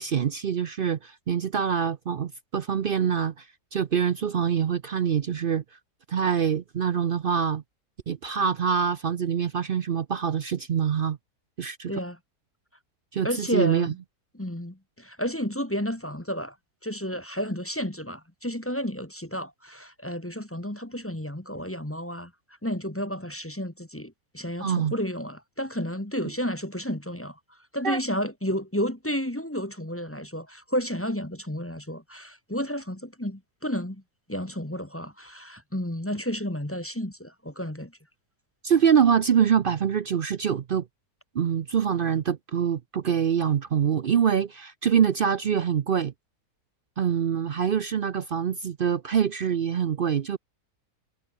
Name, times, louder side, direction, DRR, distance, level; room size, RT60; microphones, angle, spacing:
voice 1, 0.0-3.4 3.7-5.6 6.1-7.6 8.1-11.2 11.6-11.9 13.1-13.9 24.6-24.9 27.8-28.0 38.6-40.8 41.3-46.1 47.0-50.4, right 8 dB, 65° right, 0.5 m, -25 dB
voice 2, 11.9-12.2 13.2-14.0 14.3-16.5 16.8-22.3 22.6-27.4 27.7-34.0 34.3-37.9, equal, 10° left, 1.5 m, -31 dB
omnidirectional pair, 1.7 m